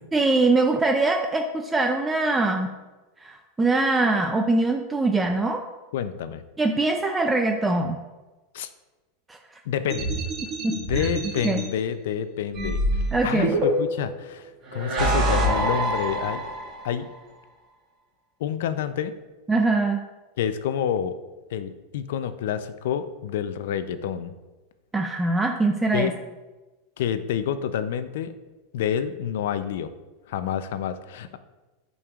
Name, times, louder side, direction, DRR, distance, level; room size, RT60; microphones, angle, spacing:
voice 1, 0.1-2.7 3.2-5.6 6.6-8.0 9.3-9.4 10.6-11.1 11.4-11.6 13.1-13.6 19.5-20.0 24.9-26.1, right 3 dB, 10° right, 4 dB, 0.4 m, -23 dB
voice 2, 5.9-6.4 8.5-8.7 9.7-10.1 10.7-16.4 16.8-17.1 18.4-19.1 20.4-21.2 21.5-24.3 25.9-26.1 27.0-28.3 28.7-29.9 30.3-31.4, left 9 dB, 75° left, 11 dB, 0.5 m, -28 dB
sound 1, 9.9-11.6 12.5-14.1 14.7-16.9, right 1 dB, 30° right, 1.8 m, -25 dB
8.6 x 5.3 x 2.4 m, 1.1 s
supercardioid pair, 150°, 0 cm